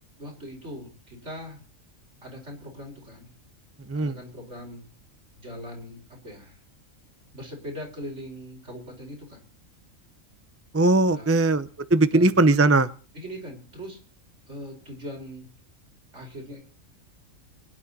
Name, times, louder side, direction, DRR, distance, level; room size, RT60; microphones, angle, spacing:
voice 1, 0.2-1.6 2.2-3.3 3.9-4.8 5.4-6.6 7.3-9.4 11.1-11.5 12.1-12.4 13.1-14.0 14.5-15.5 16.1-16.6, equal, 60° right, 0 dB, 5.3 m, -40 dB
voice 2, 10.7-12.9, right 2 dB, 15° right, 13 dB, 0.5 m, -20 dB
23.5 x 10.5 x 4.2 m, 0.37 s
omnidirectional pair, 1.3 m